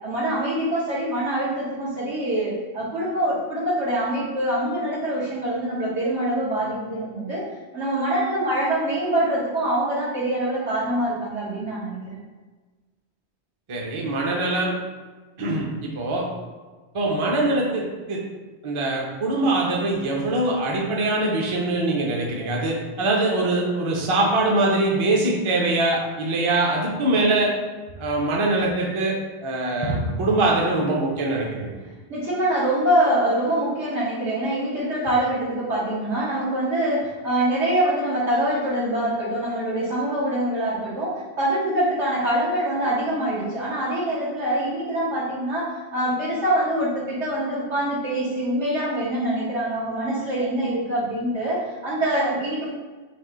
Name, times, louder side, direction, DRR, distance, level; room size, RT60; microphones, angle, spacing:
voice 1, 0.0-7.4 7.7-12.2 32.1-52.7, right 1 dB, 80° right, -7 dB, 1.7 m, -24 dB
voice 2, 13.7-14.7 15.4-16.3 16.9-18.2 18.6-27.5 28.0-31.7, right 2 dB, 35° right, -1 dB, 0.6 m, -23 dB
4.2 x 2.6 x 3.8 m, 1.3 s
omnidirectional pair, 1.2 m